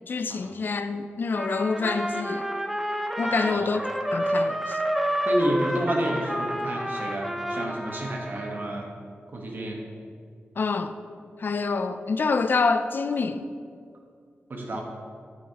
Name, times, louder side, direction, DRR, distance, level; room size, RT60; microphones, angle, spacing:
voice 1, 0.1-2.5 3.2-4.8 10.6-11.0 11.4-13.5, left 4 dB, 50° left, 0.4 m, -27 dB
Trumpet, 1.3-8.7, equal, 5° right, 0.5 m, -29 dB
voice 2, 3.2-3.7 5.3-8.9 9.3-9.8 14.5-14.8, right 1 dB, 50° right, 1.3 m, -30 dB
9.4 x 8.3 x 2.9 m
wide cardioid pair, 130°, 4 cm